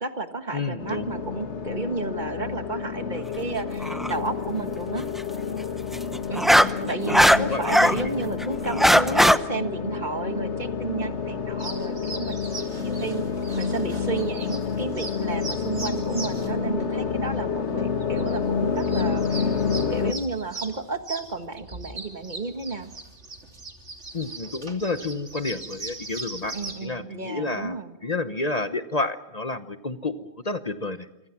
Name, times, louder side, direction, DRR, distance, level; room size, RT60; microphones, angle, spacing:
voice 1, 0.0-5.0 6.3-6.6 6.9-13.2 13.6-19.5 19.9-22.9 26.5-27.9, right 3 dB, 40° right, 8 dB, 1.8 m, -32 dB
voice 2, 0.5-1.1 6.7-8.1 24.1-26.5 26.8-31.1, left 3 dB, 35° left, 11 dB, 1.0 m, -30 dB
sound 1, 0.8-20.1, left 6 dB, 80° left, 1.7 m, -29 dB
sound 2, 3.8-4.1 5.9-8.0 8.4-9.4, equal, ahead, 0.6 m, -18 dB
sound 3, 11.6-26.8, right 2 dB, 80° right, 3.2 m, -40 dB
27.0 x 24.5 x 6.0 m, 0.97 s
omnidirectional pair, 1.2 m